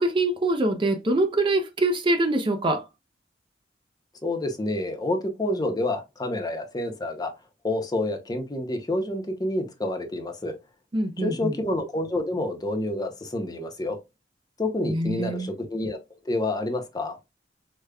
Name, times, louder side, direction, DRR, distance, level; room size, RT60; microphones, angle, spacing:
voice 1, 0.0-2.8 10.9-11.6 14.9-15.5, right 2 dB, 30° right, 0.4 m, -24 dB
voice 2, 4.2-7.3 7.6-10.5 11.2-14.0 14.6-16.0 16.3-17.2, left 1 dB, 20° left, 0.6 m, -28 dB
4.9 x 2.1 x 2.2 m
head